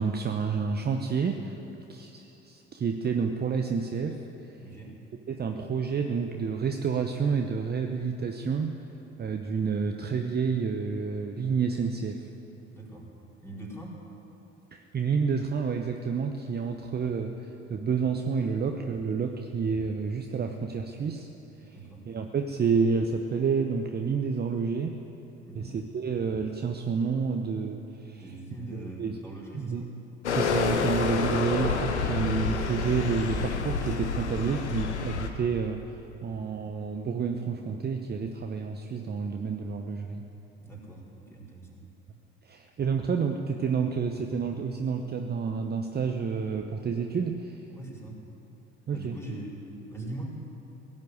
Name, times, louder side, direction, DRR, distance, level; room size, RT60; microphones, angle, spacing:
voice 1, 0.0-1.6 1.9-4.2 5.3-8.8 9.2-12.2 14.7-21.3 21.7-21.8 22.0-25.0 25.5-28.2 28.7-29.2 29.5-29.8 30.3-35.8 36.2-40.2 42.4-47.6 48.9-49.2, right 5 dB, 30° right, 4 dB, 0.9 m, -29 dB
voice 2, 4.6-5.0 12.7-13.1 13.4-14.0 21.7-22.0 25.5-25.7 28.2-29.9 40.6-41.8 47.7-48.2 48.9-50.4, right 2 dB, 10° left, -4 dB, 4.6 m, -41 dB
sound 1, 30.2-35.3, left 5 dB, 85° left, 0.9 m, -28 dB
17.0 x 7.6 x 9.5 m, 3.0 s
figure-of-eight pair, 55°, 33 cm